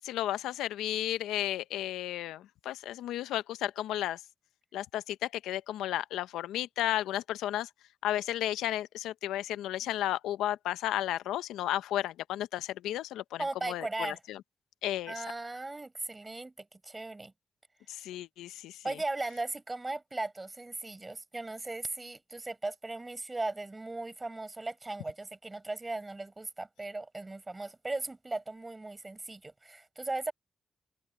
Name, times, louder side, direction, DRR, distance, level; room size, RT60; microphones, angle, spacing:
voice 1, 0.0-4.2 4.7-7.7 8.0-13.4 13.7-14.4 14.8-15.1 17.9-18.8, left 13 dB, 90° left, 0.6 m, -33 dB
voice 2, 13.4-14.2 15.1-17.3 18.8-30.3, right 2 dB, 30° right, 6.3 m, -37 dB
open air
supercardioid pair, 45°, 0 cm